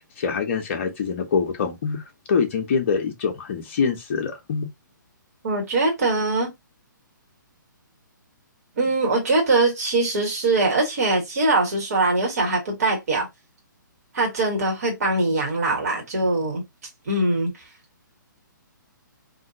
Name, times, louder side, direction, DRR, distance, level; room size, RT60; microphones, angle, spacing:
voice 1, 0.2-2.0 2.3-4.7, left 5 dB, 40° left, 0.8 m, -24 dB
voice 2, 5.4-6.5 8.8-13.3 14.1-16.6 17.1-17.5, right 2 dB, 45° right, 1.4 m, -22 dB
2.7 x 2.6 x 2.7 m
figure-of-eight pair, 130°, 11 cm